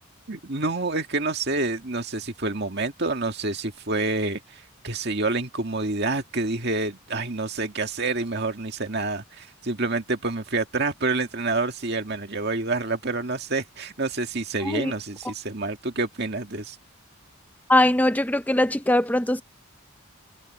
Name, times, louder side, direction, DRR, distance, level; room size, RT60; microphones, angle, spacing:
voice 1, 0.3-16.8, right 3 dB, 50° right, 2.1 m, -28 dB
voice 2, 17.7-19.4, left 1 dB, 5° left, 0.7 m, -21 dB
head